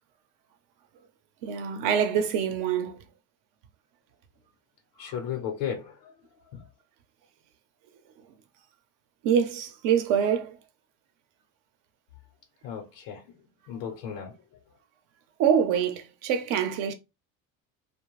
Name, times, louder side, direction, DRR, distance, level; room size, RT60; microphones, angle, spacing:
voice 1, 1.4-3.0 9.2-10.6 15.4-16.9, right 8 dB, 80° right, 0.6 m, -25 dB
voice 2, 5.0-6.1 6.5-6.6 12.6-13.2 13.7-14.3, left 8 dB, 90° left, 0.8 m, -34 dB
2.5 x 2.1 x 3.0 m
cardioid pair, 150°, 32 cm